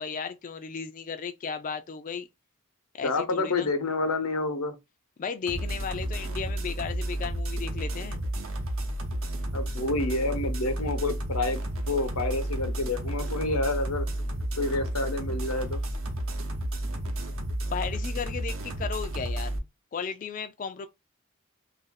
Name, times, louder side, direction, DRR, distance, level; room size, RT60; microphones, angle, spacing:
voice 1, 0.0-2.3 2.9-3.7 5.2-8.2 17.7-19.6 19.9-20.9, left 6 dB, 35° left, 0.3 m, -35 dB
voice 2, 3.0-4.7 9.5-11.6 11.9-14.1 14.6-15.8, left 2 dB, 90° left, 0.8 m, -28 dB
sound 1, 5.5-19.6, right 1 dB, 65° right, 0.8 m, -32 dB
2.8 x 2.5 x 4.0 m
head